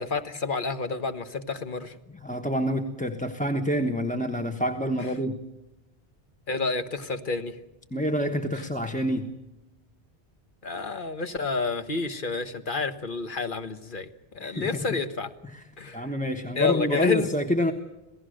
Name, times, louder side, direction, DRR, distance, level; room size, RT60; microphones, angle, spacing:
voice 1, 0.0-1.9 6.5-7.5 10.6-14.1 14.3-15.3 15.8-16.1 16.6-17.3, left 4 dB, 55° left, 9 dB, 1.5 m, -29 dB
voice 2, 2.1-5.4 7.9-9.3 14.4-15.0 15.4-15.6 15.9-17.7, equal, 10° left, 4 dB, 1.1 m, -27 dB
27.0 x 17.0 x 6.5 m, 1.0 s
omnidirectional pair, 1.0 m